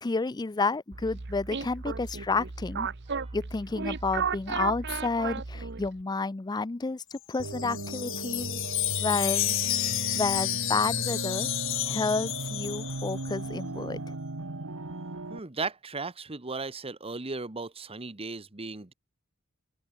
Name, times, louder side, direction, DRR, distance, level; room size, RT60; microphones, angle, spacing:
voice 1, 0.0-2.9 3.3-8.6 9.0-9.6 10.1-11.5 11.9-14.2, left 3 dB, 20° left, 0.4 m, -30 dB
sound 1, 0.9-6.0, right 5 dB, 55° right, 1.1 m, -34 dB
Wind chime, 7.2-13.4, left 15 dB, 65° left, 2.5 m, -31 dB
sound 2, 7.4-15.4, right 2 dB, 70° right, 1.6 m, -36 dB
voice 2, 15.3-18.9, right 3 dB, 25° right, 1.2 m, -36 dB
open air
head